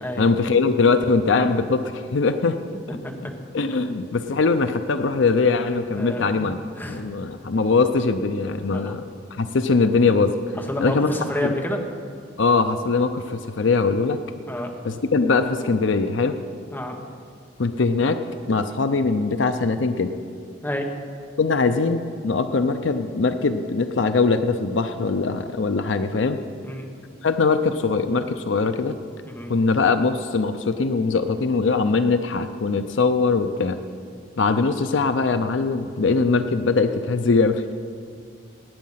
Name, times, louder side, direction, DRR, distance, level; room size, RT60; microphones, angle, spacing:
voice 1, 0.2-2.6 3.5-6.6 6.9-10.3 10.8-11.1 11.4-11.5 12.4-14.2 14.8-16.4 17.6-18.2 18.5-20.1 21.4-26.4 27.2-28.9 29.5-33.8 34.4-37.7, left 4 dB, 65° left, 9 dB, 0.6 m, -21 dB
voice 2, 5.9-7.0 8.7-9.0 10.7-11.8 14.5-14.7 16.7-16.9 20.6-20.9 26.6-26.9 29.3-29.5, left 1 dB, 10° left, 1 dB, 1.4 m, -29 dB
18.0 x 9.3 x 5.7 m, 2.2 s
head